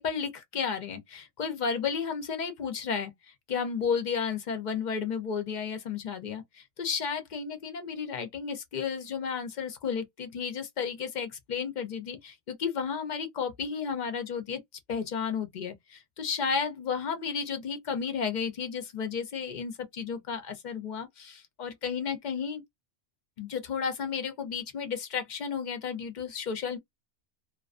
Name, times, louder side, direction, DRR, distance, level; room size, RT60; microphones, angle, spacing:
voice 1, 0.0-14.6 14.9-22.6 23.4-26.8, left 6 dB, 55° left, 0.6 m, -33 dB
2.3 x 2.3 x 2.4 m
omnidirectional pair, 1.1 m